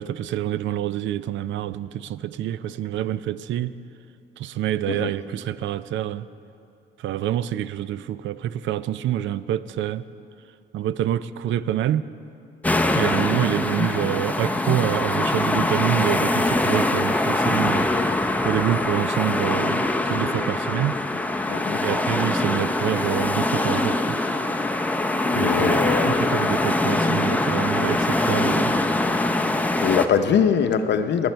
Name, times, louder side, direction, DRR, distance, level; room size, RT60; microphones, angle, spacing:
voice 1, 0.0-3.7 4.4-6.3 7.0-10.0 10.7-12.1 12.9-17.9 18.4-21.0 21.8-24.2 25.4-28.7, right 12 dB, 70° right, 16 dB, 0.4 m, -26 dB
sound 1, 12.6-30.1, left 2 dB, 5° left, 0.6 m, -23 dB
voice 2, 21.5-21.8 25.3-26.3 29.8-31.3, left 7 dB, 60° left, 9 dB, 0.7 m, -22 dB
20.0 x 8.0 x 4.4 m, 2.7 s
cardioid pair, 90°, 20 cm